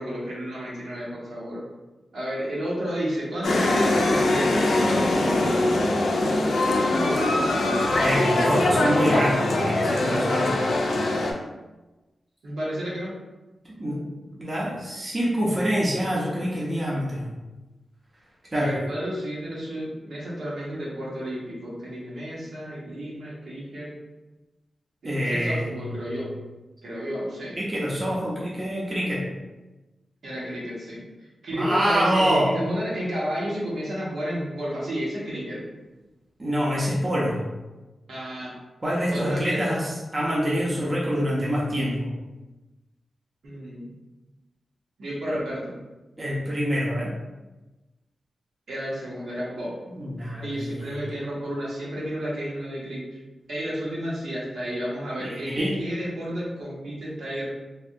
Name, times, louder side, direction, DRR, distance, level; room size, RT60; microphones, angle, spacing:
voice 1, 0.0-1.6 2.1-6.0 6.6-8.6 12.4-13.1 14.2-14.4 18.5-23.9 25.0-26.3 26.8-27.6 30.2-31.0 31.4-35.6 38.1-38.6 39.1-39.9 43.4-43.9 45.0-45.8 48.7-49.7 50.4-53.2 53.5-57.5, equal, 85° right, -6 dB, 1.0 m, -31 dB
sound 1, 3.4-11.3, left 2 dB, 90° left, 0.4 m, -22 dB
voice 2, 8.0-10.5 13.8-14.0 14.4-17.3 18.5-18.7 25.0-26.1 27.5-29.2 31.5-32.5 36.4-37.4 38.8-42.1 46.2-47.1 49.9-50.9 55.2-55.8, equal, 25° right, -5 dB, 0.6 m, -26 dB
3.2 x 2.3 x 2.6 m, 1.1 s
wide cardioid pair, 150°, 0 cm